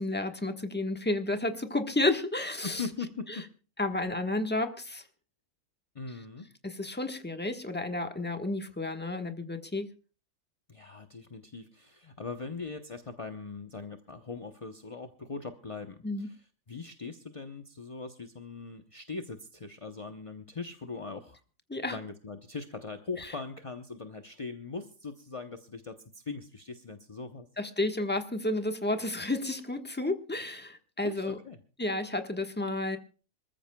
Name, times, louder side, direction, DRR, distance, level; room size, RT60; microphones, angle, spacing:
voice 1, 0.0-2.8 3.3-3.4 3.8-5.0 6.6-9.9 16.0-16.3 21.7-22.0 23.2-23.3 27.6-31.4 31.8-33.0, left 2 dB, 5° left, 6 dB, 1.0 m, -31 dB
voice 2, 2.6-3.5 5.9-6.5 10.7-16.4 16.7-21.4 21.9-27.5 31.0-31.6, left 4 dB, 35° left, 6 dB, 0.5 m, -40 dB
26.0 x 14.0 x 2.2 m, 0.37 s
omnidirectional pair, 1.8 m